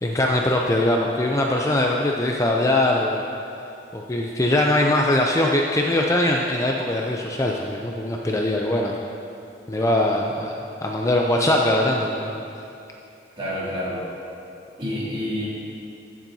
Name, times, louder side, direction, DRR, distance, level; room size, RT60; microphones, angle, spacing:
voice 1, 0.0-3.2 3.9-9.0 9.7-12.4, left 1 dB, 15° left, 0 dB, 0.4 m, -21 dB
voice 2, 13.4-14.0 14.8-15.5, left 1 dB, 30° right, -8 dB, 2.3 m, -28 dB
15.0 x 7.2 x 2.7 m, 2.7 s
head